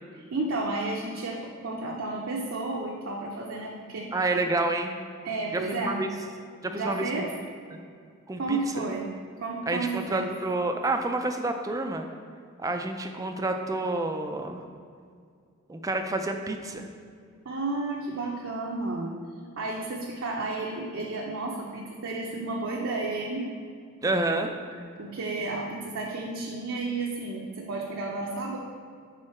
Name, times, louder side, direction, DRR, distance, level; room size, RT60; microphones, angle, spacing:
voice 1, 0.1-4.2 5.2-6.0 6.7-7.3 8.4-9.1 9.4-10.3 17.4-19.1 19.6-23.5 24.7-28.6, right 3 dB, 65° right, -2 dB, 0.6 m, -32 dB
voice 2, 4.1-5.0 5.5-6.1 6.6-7.1 7.7-7.8 8.3-8.8 9.7-12.1 12.6-14.6 15.7-16.9 24.0-24.5, right 2 dB, 15° right, 5 dB, 0.3 m, -29 dB
6.3 x 3.8 x 4.3 m, 2.2 s
head